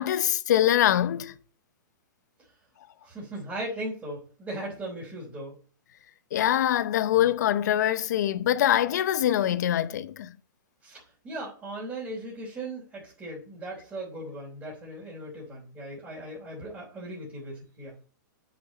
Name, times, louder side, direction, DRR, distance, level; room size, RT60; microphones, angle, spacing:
voice 1, 0.0-1.3 6.3-10.3, left 11 dB, 60° left, 0.8 m, -24 dB
voice 2, 3.0-5.6 10.8-17.9, right 1 dB, 15° right, 3.6 m, -38 dB
9.6 x 6.5 x 4.2 m
hypercardioid pair, 160°, 10 cm